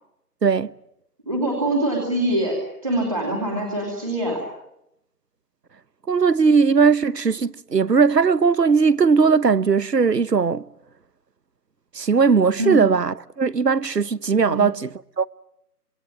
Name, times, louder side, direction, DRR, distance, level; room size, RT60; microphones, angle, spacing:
voice 1, 0.4-0.7 6.1-10.6 11.9-15.3, right 5 dB, 90° right, 1.1 m, -19 dB
voice 2, 1.3-4.4 12.6-12.8 14.5-14.7, right 1 dB, 20° right, 2.8 m, -24 dB
26.5 x 21.5 x 8.8 m
figure-of-eight pair, 180°, 48 cm